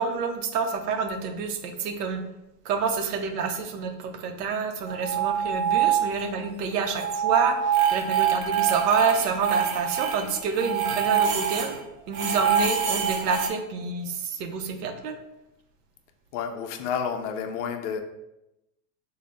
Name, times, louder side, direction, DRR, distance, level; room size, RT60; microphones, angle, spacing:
voice 1, 0.0-2.2 2.6-11.8 12.1-15.2, right 5 dB, 75° right, 7 dB, 0.7 m, -28 dB
sound 1, 4.9-6.5 6.7-11.8 12.1-13.5, right 8 dB, 40° right, 0.5 m, -25 dB
voice 2, 16.3-18.0, left 7 dB, 50° left, 6 dB, 0.5 m, -30 dB
3.8 x 2.1 x 3.3 m, 0.91 s
supercardioid pair, 140°, 48 cm